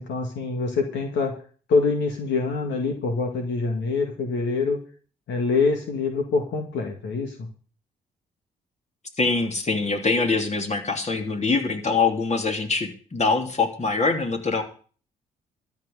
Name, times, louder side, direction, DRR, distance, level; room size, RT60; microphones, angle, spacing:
voice 1, 0.0-1.3 1.7-4.8 5.3-7.5, left 4 dB, 70° left, 4 dB, 2.1 m, -25 dB
voice 2, 9.2-14.6, left 4 dB, 35° left, 4 dB, 3.2 m, -24 dB
13.0 x 6.0 x 9.3 m, 0.41 s
hypercardioid pair, 50°, 19 cm